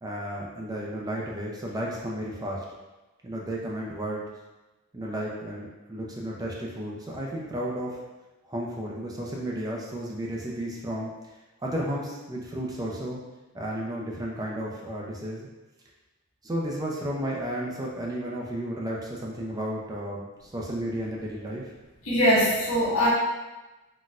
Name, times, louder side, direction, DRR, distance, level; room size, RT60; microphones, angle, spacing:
voice 1, 0.0-2.6 3.2-4.2 4.9-8.0 8.4-11.1 11.6-13.2 13.5-15.5 16.4-21.7, right 1 dB, 15° right, -3 dB, 0.4 m, -33 dB
voice 2, 22.0-23.1, equal, 85° left, -8 dB, 1.4 m, -22 dB
4.0 x 2.1 x 2.4 m, 1.1 s
head